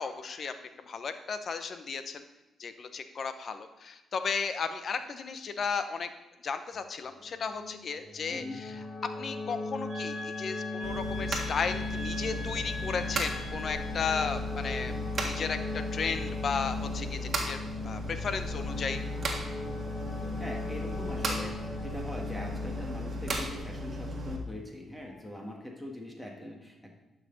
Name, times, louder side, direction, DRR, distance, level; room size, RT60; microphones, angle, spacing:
voice 1, 0.0-2.2 2.6-6.1 6.4-14.9 15.2-19.0, left 5 dB, 55° left, 10 dB, 0.8 m, -35 dB
sound 1, 6.7-24.1 25.1-25.2, left 2 dB, 35° left, 1.3 m, -39 dB
sound 2, 9.9-14.2, left 2 dB, 75° right, 1.7 m, -42 dB
sound 3, 10.8-24.4, equal, 50° right, 1.7 m, -36 dB
voice 2, 20.2-26.9, left 1 dB, 10° left, 0 dB, 1.7 m, -42 dB
11.5 x 5.9 x 3.9 m, 1.0 s
cardioid pair, 70°, 0 cm